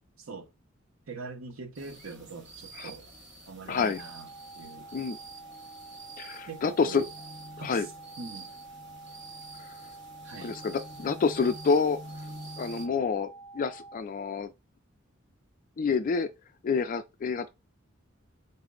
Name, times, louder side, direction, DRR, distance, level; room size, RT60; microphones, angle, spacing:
voice 1, 0.2-0.5 1.1-3.1 3.5-4.3 4.6-4.9 6.5-7.1 7.6-7.9 8.2-8.5 10.2-10.6, right 4 dB, 80° right, 0.7 m, -43 dB
sound 1, 1.7-12.9, right 2 dB, 60° right, 1.0 m, -47 dB
voice 2, 3.7-4.0 4.9-5.2 6.2-7.1 7.6-7.9 9.6-9.7 10.4-12.0 12.6-14.5 15.8-16.3 16.6-17.5, left 5 dB, 40° left, 0.3 m, -28 dB
sound 2, 4.0-14.0, right 3 dB, 10° right, 0.7 m, -48 dB
4.1 x 2.0 x 3.6 m
head